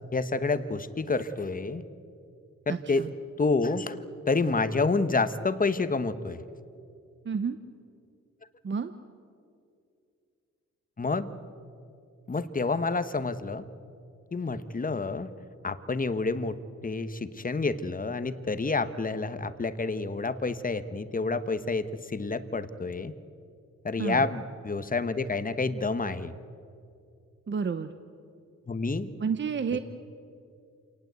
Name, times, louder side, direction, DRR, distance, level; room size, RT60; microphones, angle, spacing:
voice 1, 0.1-1.8 2.7-3.1 3.4-4.0 4.3-6.4 11.0-11.3 12.3-13.6 14.3-15.3 15.6-16.6 16.8-23.1 23.8-26.3 28.7-29.1, left 3 dB, 30° left, 12 dB, 1.2 m, -28 dB
voice 2, 2.7-3.1 7.2-7.6 8.6-8.9 24.0-24.2 27.5-27.9 29.2-29.8, right 6 dB, 40° right, 10 dB, 0.9 m, -30 dB
27.5 x 19.0 x 8.2 m, 2.5 s
cardioid pair, 95°, 29 cm